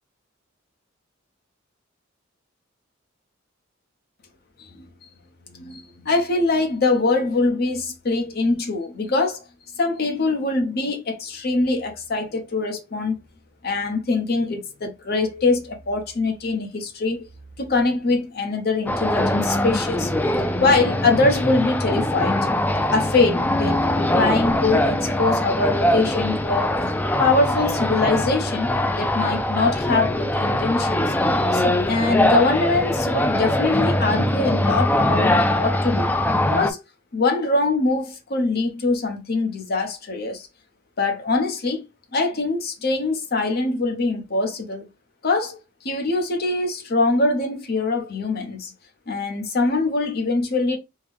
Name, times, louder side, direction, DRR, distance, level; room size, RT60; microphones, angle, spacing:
voice 1, 5.5-9.4 9.8-13.1 13.6-17.3 17.6-20.1 20.6-22.4 22.9-26.7 27.2-28.7 29.0-31.1 31.5-36.1 36.5-36.8 37.1-40.5 41.0-41.8 42.1-44.9 45.2-45.6 45.8-48.7 49.1-50.8, left 3 dB, 50° left, 0.8 m, -23 dB
sound 1, 18.9-36.7, left 1 dB, 10° left, 0.3 m, -22 dB
3.6 x 2.2 x 3.3 m
head